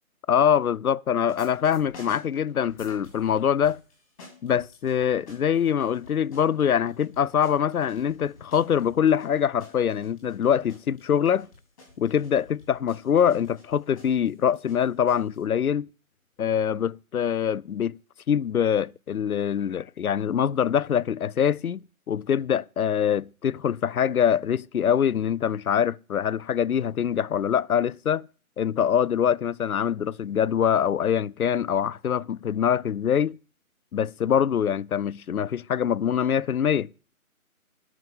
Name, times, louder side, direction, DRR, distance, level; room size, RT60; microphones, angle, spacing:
voice 1, 0.3-3.8 4.4-11.5 12.0-15.9 16.4-18.0 18.3-28.3 28.6-33.4 33.9-37.1, left 8 dB, 80° left, 0.6 m, -24 dB
sound 1, 1.2-3.3 3.6-15.4, left 2 dB, 10° left, 3.3 m, -51 dB
13.0 x 6.3 x 7.0 m
figure-of-eight pair, 170°, 43 cm